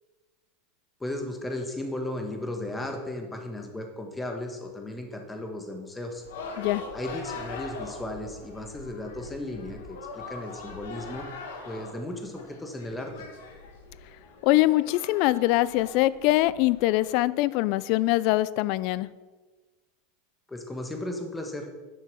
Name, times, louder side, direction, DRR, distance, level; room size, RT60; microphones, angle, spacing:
voice 1, 1.0-6.2 6.9-11.2 11.6-13.1 20.5-21.7, left 1 dB, 10° left, 4 dB, 1.6 m, -35 dB
sound 1, 6.2-17.2, left 4 dB, 85° left, 1.8 m, -42 dB
voice 2, 14.4-19.1, left 17 dB, 55° left, 18 dB, 0.4 m, -23 dB
10.5 x 6.3 x 5.5 m, 1.3 s
supercardioid pair, 125°, 0 cm